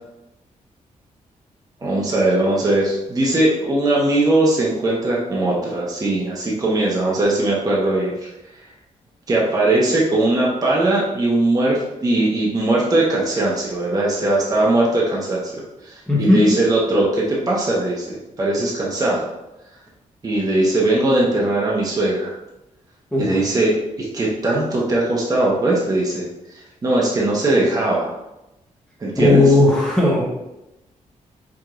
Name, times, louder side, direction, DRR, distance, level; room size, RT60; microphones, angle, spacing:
voice 1, 1.8-8.2 9.3-19.3 20.2-22.3 23.2-26.3 26.5-28.1 29.0-29.5, right 2 dB, 30° right, -4 dB, 0.9 m, -20 dB
voice 2, 16.1-16.4 23.1-23.3 29.2-30.2, left 2 dB, 5° left, -5 dB, 1.0 m, -15 dB
4.8 x 4.2 x 2.5 m, 0.94 s
wide cardioid pair, 125°, 13 cm